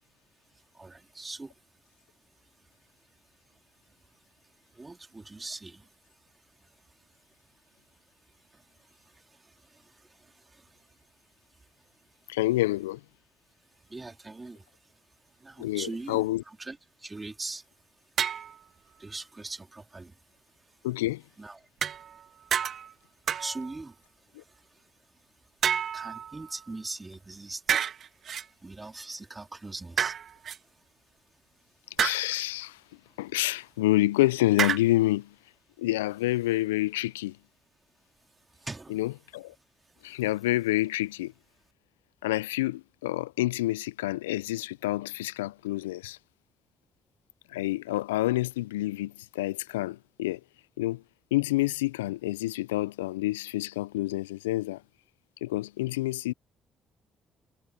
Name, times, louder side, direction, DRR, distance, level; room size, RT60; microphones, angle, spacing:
voice 1, 0.8-1.6 2.4-2.8 3.5-3.6 3.9-11.1 11.5-12.5 12.8-13.0 13.7-17.7 18.1-18.4 18.8-21.7 22.2-22.7 23.3-25.5 25.9-30.9 33.1-33.6 38.6-39.4 39.8-40.7, right 3 dB, 25° right, 3.6 m, -44 dB
voice 2, 12.3-13.0 15.6-16.4 20.8-21.2 24.4-24.5 32.0-32.8 33.2-35.3 35.8-37.4 38.9-39.5 40.0-41.3 42.2-46.2 47.5-50.4 50.8-51.0 51.3-54.8 55.4-56.3, left 17 dB, 85° left, 0.4 m, -28 dB
sound 1, 18.2-18.6 21.8-22.3 22.5-22.9 23.3-23.8 25.6-26.7 27.7-28.5 30.0-30.6 32.0-32.4 34.6-34.8, right 8 dB, 55° right, 0.6 m, -29 dB
hypercardioid pair, 45°, 0 cm